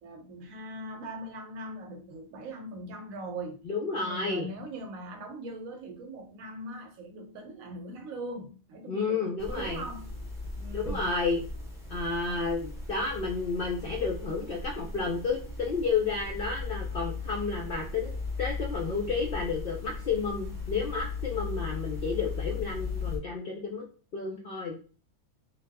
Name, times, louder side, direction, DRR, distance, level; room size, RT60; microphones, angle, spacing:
voice 1, 0.0-3.6 3.9-10.1 10.6-11.1 11.9-12.5, right 1 dB, 75° right, 1.0 m, -41 dB
voice 2, 3.7-4.5 8.9-9.8 10.7-11.4 11.9-23.8 24.1-24.8, left 4 dB, 60° left, 0.6 m, -31 dB
sound 1, 9.4-23.2, left 4 dB, 5° right, 0.5 m, -37 dB
2.7 x 2.3 x 3.3 m
omnidirectional pair, 1.5 m